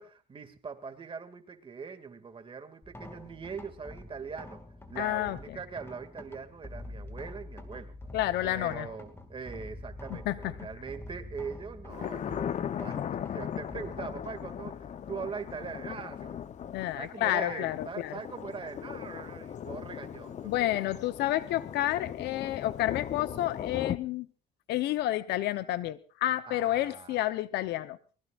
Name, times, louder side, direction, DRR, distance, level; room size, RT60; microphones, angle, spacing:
voice 1, 0.0-4.6 4.9-7.9 8.4-16.4 16.9-21.0 26.5-27.2, right 5 dB, 30° right, 2.2 m, -42 dB
sound 1, 2.8-17.1, left 1 dB, 15° left, 2.3 m, -47 dB
voice 2, 4.9-5.6 8.1-8.9 10.1-10.5 16.7-18.2 20.4-24.3 24.7-28.0, left 14 dB, 80° left, 0.9 m, -30 dB
Thunder, 11.9-24.0, left 9 dB, 45° left, 0.8 m, -38 dB
23.0 x 20.0 x 2.5 m
cardioid pair, 110°, 17 cm